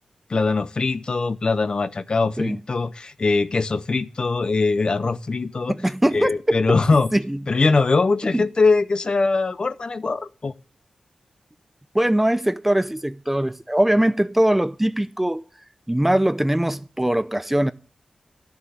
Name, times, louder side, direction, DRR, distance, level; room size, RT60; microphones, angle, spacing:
voice 1, 0.3-5.8 6.1-7.1 7.5-10.5, left 3 dB, 45° left, 0.6 m, -21 dB
voice 2, 5.7-6.6 7.1-7.4 8.3-8.5 11.9-15.4 15.9-17.7, right 1 dB, 10° right, 0.5 m, -21 dB
12.5 x 6.9 x 8.0 m
wide cardioid pair, 95°, 2 cm